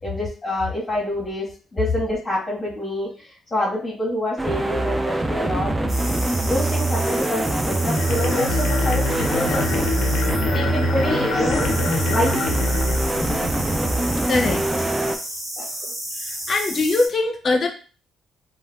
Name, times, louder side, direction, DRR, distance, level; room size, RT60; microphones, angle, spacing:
voice 1, 0.0-3.1 3.5-5.7 6.5-9.7 10.5-11.7 12.1-12.6 15.6-15.7, left 1 dB, 25° left, -5 dB, 1.3 m, -27 dB
sound 1, 4.4-15.2, right 2 dB, 15° right, 0.3 m, -23 dB
sound 2, 5.9-17.1, right 1 dB, 35° right, 1.0 m, -32 dB
sound 3, 7.7-14.0, left 5 dB, 90° left, 0.4 m, -27 dB
voice 2, 14.3-14.6 16.3-17.7, left 3 dB, 45° left, 4 dB, 0.6 m, -21 dB
3.3 x 2.2 x 2.3 m, 0.37 s
cardioid pair, 90°, 0 cm